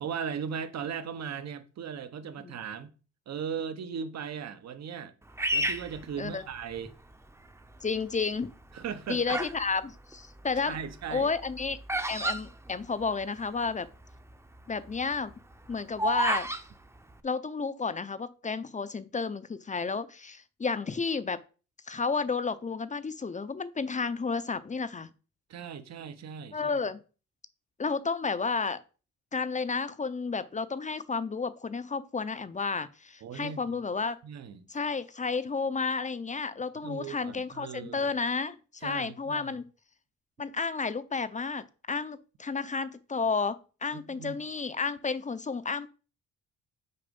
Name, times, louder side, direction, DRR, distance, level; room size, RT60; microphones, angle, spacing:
voice 1, 0.0-2.9 3.3-5.1 5.5-6.9 8.7-9.4 10.6-11.3 25.5-26.8 33.2-33.8 34.2-34.6 36.8-38.1 38.8-39.5 43.9-44.4, right 7 dB, 60° right, 1.1 m, -38 dB
Bird vocalization bird call bird song, 5.4-6.9 7.5-8.0 8.7-9.6 9.9-13.4 13.7-13.8 13.9-14.3 14.7-16.6, right 1 dB, 10° right, 0.8 m, -31 dB
voice 2, 7.8-8.5 9.1-10.8 11.1-11.8 12.1-13.9 14.7-15.3 15.7-16.5 17.2-21.4 21.9-25.1 26.5-27.0 27.8-28.8 29.3-34.2 34.7-39.7 40.4-43.6 43.8-45.9, left 4 dB, 25° left, 0.7 m, -31 dB
6.7 x 4.9 x 5.3 m
cardioid pair, 90°, 30 cm